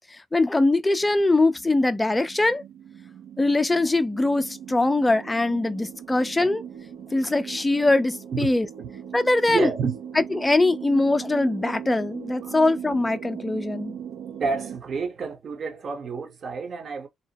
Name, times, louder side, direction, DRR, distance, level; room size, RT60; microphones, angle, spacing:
voice 1, 0.3-2.6 3.4-6.6 7.1-8.7 9.1-9.7 10.3-13.9, left 2 dB, 15° left, 0.4 m, -22 dB
sound 1, 0.9-14.8, right 8 dB, 75° right, 0.6 m, -39 dB
voice 2, 9.5-9.9 12.4-12.6 14.4-17.1, right 5 dB, 45° right, 0.9 m, -29 dB
2.7 x 2.1 x 2.8 m
cardioid pair, 105°, 0 cm